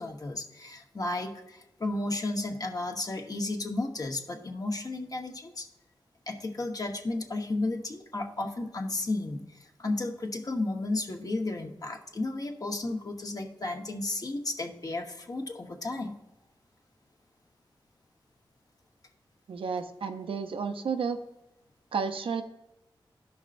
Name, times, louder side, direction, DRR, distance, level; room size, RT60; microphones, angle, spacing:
voice 1, 0.0-5.7 6.3-16.1, left 2 dB, 45° left, 2 dB, 1.0 m, -33 dB
voice 2, 19.5-21.2 21.9-22.4, right 5 dB, 85° right, 7 dB, 0.6 m, -31 dB
13.0 x 5.4 x 2.5 m, 0.91 s
wide cardioid pair, 80°, 9 cm